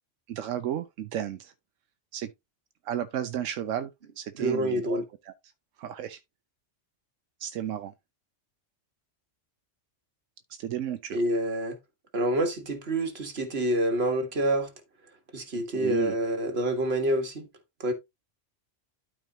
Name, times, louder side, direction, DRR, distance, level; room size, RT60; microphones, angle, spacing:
voice 1, 0.3-1.5 2.1-2.3 2.8-5.3 5.8-6.2 7.4-7.9 10.5-11.2 15.5-16.2, right 10 dB, 90° right, 1.0 m, -33 dB
voice 2, 4.4-5.0 11.1-11.8 12.1-14.7 15.3-17.5 17.8-17.9, right 1 dB, 55° right, 1.9 m, -27 dB
12.0 x 4.6 x 2.8 m
omnidirectional pair, 1.3 m